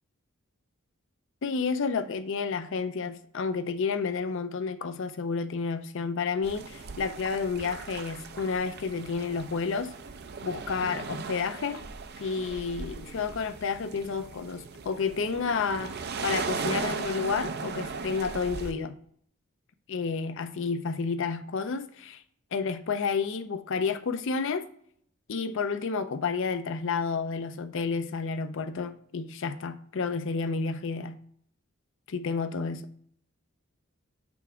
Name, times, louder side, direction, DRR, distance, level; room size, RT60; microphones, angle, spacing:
voice 1, 1.4-9.9 10.4-11.9 12.2-19.0 19.9-22.2 22.5-24.7 25.3-31.2 32.1-32.9, left 5 dB, 60° left, 0.5 m, -30 dB
sound 1, 6.4-18.7, right 4 dB, 50° right, 0.5 m, -38 dB
7.0 x 3.4 x 4.8 m
head